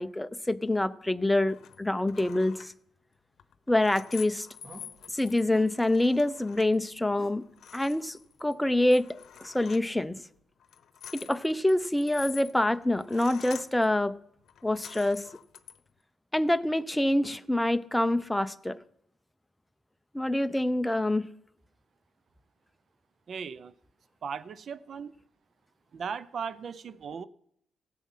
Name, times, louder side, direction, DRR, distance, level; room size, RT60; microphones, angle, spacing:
voice 1, 0.0-2.7 3.7-4.5 5.1-7.4 7.7-10.2 11.1-14.2 14.6-15.2 16.3-18.8 20.1-21.3, left 1 dB, 5° left, 0.6 m, -26 dB
sound 1, 1.5-1.8 2.1-2.7 3.4-6.8 7.1-7.2 7.4-8.5 8.9-9.9 10.6-13.9 14.4-15.8, left 9 dB, 65° left, 0.9 m, -47 dB
sound 2, 4.2-10.4, right 1 dB, 35° right, 3.4 m, -55 dB
voice 2, 23.3-23.7 24.2-25.1 25.9-27.2, right 6 dB, 55° right, 0.6 m, -37 dB
16.5 x 7.4 x 5.6 m
cardioid pair, 90°, 0 cm